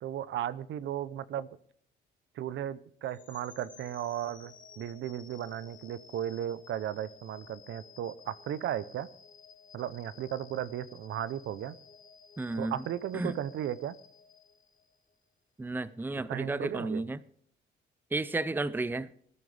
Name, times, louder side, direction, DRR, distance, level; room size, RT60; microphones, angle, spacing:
voice 1, 0.0-1.5 2.4-9.1 9.7-11.7 12.6-13.9 16.3-17.0, right 11 dB, 70° right, 0.7 m, -35 dB
sound 1, 3.0-15.1, left 6 dB, 40° left, 1.8 m, -55 dB
voice 2, 12.4-12.8 13.1-13.4 15.6-17.2 18.1-19.1, right 2 dB, 10° right, 0.5 m, -32 dB
19.5 x 9.5 x 3.4 m
cardioid pair, 90°, 20 cm